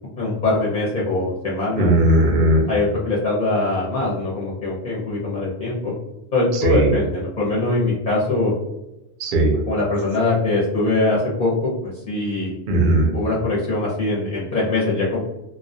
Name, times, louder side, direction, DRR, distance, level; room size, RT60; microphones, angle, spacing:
voice 1, 0.2-1.9 2.7-5.9 6.3-8.5 9.7-12.5 13.1-15.2, left 2 dB, 50° left, -5 dB, 0.6 m, -22 dB
voice 2, 1.8-2.6 6.5-7.0 9.2-9.6 12.7-13.1, right 1 dB, 55° right, 1 dB, 0.6 m, -17 dB
2.2 x 2.1 x 2.6 m, 0.94 s
omnidirectional pair, 1.1 m